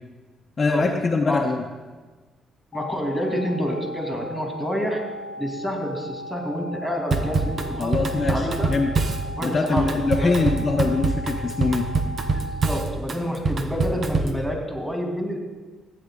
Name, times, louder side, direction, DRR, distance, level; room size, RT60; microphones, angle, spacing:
voice 1, 0.6-1.6 7.8-8.9 9.4-11.9, left 3 dB, 35° left, 1 dB, 0.8 m, -23 dB
sound 1, 2.7-12.7, left 1 dB, 75° left, 0.7 m, -37 dB
voice 2, 2.7-5.0 5.4-8.7 9.2-10.3 12.3-15.4, equal, 5° right, 0 dB, 2.6 m, -28 dB
Drum kit / Drum, 7.1-14.4, right 4 dB, 45° right, 1.0 m, -25 dB
14.5 x 8.5 x 3.8 m, 1.3 s
cardioid pair, 90°, 0 cm